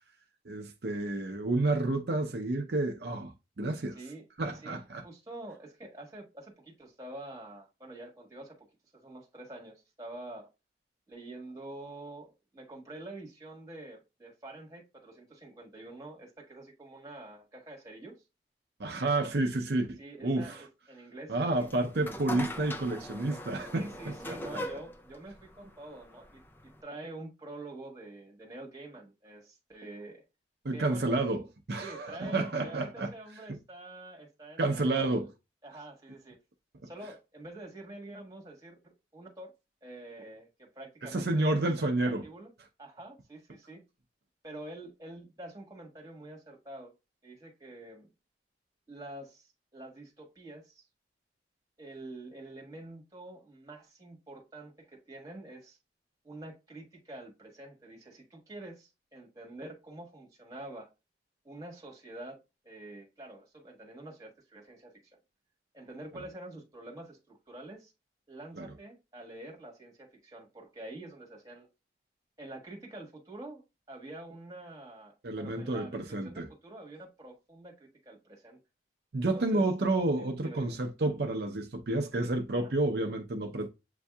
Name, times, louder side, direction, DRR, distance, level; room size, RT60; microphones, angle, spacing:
voice 1, 0.5-4.0 4.4-5.0 18.8-20.6 21.3-24.6 30.6-31.4 31.7-33.1 34.6-35.3 41.0-42.2 68.6-68.7 75.2-76.5 79.1-83.7, right 2 dB, 65° right, 0.6 m, -30 dB
voice 2, 3.9-8.7 8.9-10.5 11.1-18.1 20.0-21.3 23.7-30.2 30.7-31.2 31.8-35.2 35.6-36.4 36.8-39.5 39.8-42.5 42.8-43.8 44.4-46.9 47.2-48.1 48.9-50.8 51.8-55.8 56.2-60.9 61.4-62.4 62.6-65.2 65.7-67.9 68.3-71.7 72.4-78.6 79.3-79.6 80.2-80.8, right 2 dB, 20° right, 1.5 m, -47 dB
sound 1, 21.5-26.8, left 1 dB, 10° left, 0.4 m, -41 dB
8.0 x 2.7 x 2.2 m
head